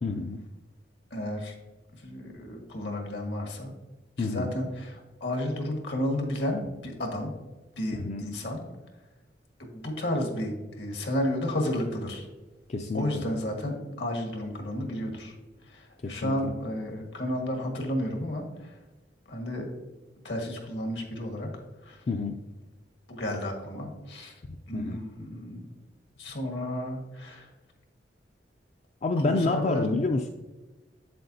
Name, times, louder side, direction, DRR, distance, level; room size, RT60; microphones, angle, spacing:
voice 1, 0.0-0.4 4.2-4.5 8.0-8.2 12.7-13.0 16.0-16.5 22.1-22.4 24.7-25.0 29.0-30.3, left 3 dB, 40° left, 4 dB, 0.4 m, -28 dB
voice 2, 1.1-1.5 2.0-3.7 4.2-7.3 7.8-8.6 9.6-12.3 12.9-15.3 15.6-18.8 19.3-19.7 20.2-21.5 21.8-22.0 23.1-24.4 24.7-25.6 26.2-27.5 29.2-29.9, left 1 dB, 70° left, 2 dB, 1.6 m, -32 dB
7.9 x 7.6 x 2.7 m, 1.1 s
head